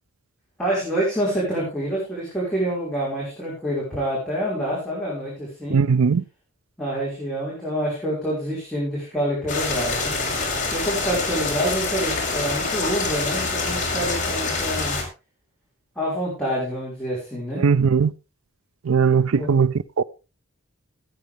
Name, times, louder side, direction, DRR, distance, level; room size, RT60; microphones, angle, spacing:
voice 1, 0.6-5.8 6.8-10.1 10.7-15.0 16.0-17.6 19.3-19.5, right 1 dB, 5° left, 5.5 m, -27 dB
voice 2, 5.7-6.2 17.6-18.1 18.8-20.0, right 5 dB, 90° right, 0.5 m, -19 dB
sound 1, 9.5-15.0, left 3 dB, 40° left, 4.6 m, -26 dB
17.0 x 9.5 x 3.5 m
head